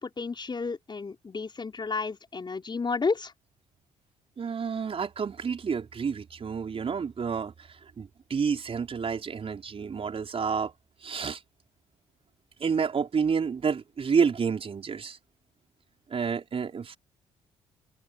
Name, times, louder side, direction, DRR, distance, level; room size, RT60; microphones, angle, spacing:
voice 1, 0.0-3.3, left 4 dB, 35° left, 5.5 m, -31 dB
voice 2, 4.4-7.5 8.0-10.7 11.0-11.4 12.6-15.2 16.1-17.0, right 6 dB, 45° right, 5.3 m, -29 dB
open air
hypercardioid pair, 55°, 14 cm